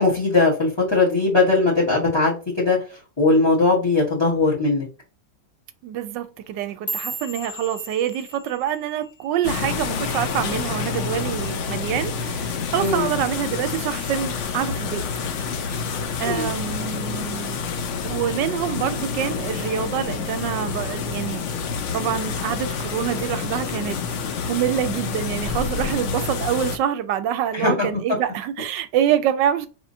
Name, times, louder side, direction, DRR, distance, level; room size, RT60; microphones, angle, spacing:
voice 1, 0.0-2.8 3.2-4.9 12.8-13.1 16.2-16.5 27.5-27.9, left 3 dB, 15° left, 1.3 m, -19 dB
voice 2, 5.8-15.1 15.3-15.8 16.2-17.6 18.0-24.0 24.5-29.7, right 10 dB, 75° right, 1.2 m, -26 dB
sound 1, 6.4-10.8 11.1-11.5 11.9-12.3 12.7-12.9 13.5-13.9 14.3-15.2 15.5-16.0 16.7-16.8, right 1 dB, 35° left, 0.4 m, -37 dB
sound 2, 9.4-26.8, left 5 dB, 80° left, 0.6 m, -28 dB
4.6 x 3.5 x 2.7 m
omnidirectional pair, 2.0 m